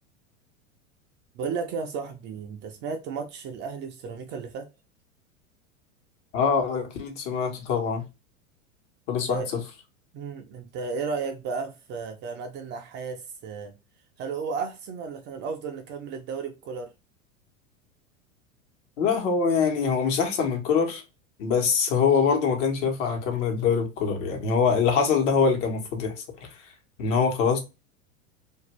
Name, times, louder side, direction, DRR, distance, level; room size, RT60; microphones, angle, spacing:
voice 1, 1.3-4.7 9.3-9.5 10.1-13.8 14.2-16.9, right 5 dB, 30° right, 0.4 m, -34 dB
voice 2, 6.3-8.0 9.1-9.4 19.0-21.0 21.4-26.1 27.0-27.6, left 6 dB, 60° left, 1.1 m, -24 dB
2.6 x 2.2 x 3.0 m
hypercardioid pair, 95°, 40 cm